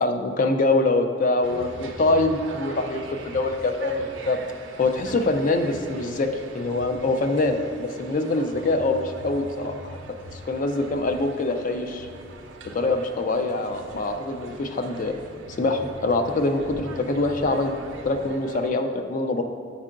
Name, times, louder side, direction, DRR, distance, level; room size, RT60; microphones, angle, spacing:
voice 1, 0.0-4.4 4.8-6.3 6.5-10.0 10.3-12.1 12.6-15.1 15.6-17.8 18.0-19.4, left 2 dB, 40° left, 6 dB, 0.4 m, -24 dB
sound 1, 1.4-18.7, right 2 dB, 65° right, 0.5 m, -41 dB
8.6 x 4.4 x 2.5 m, 2.1 s
head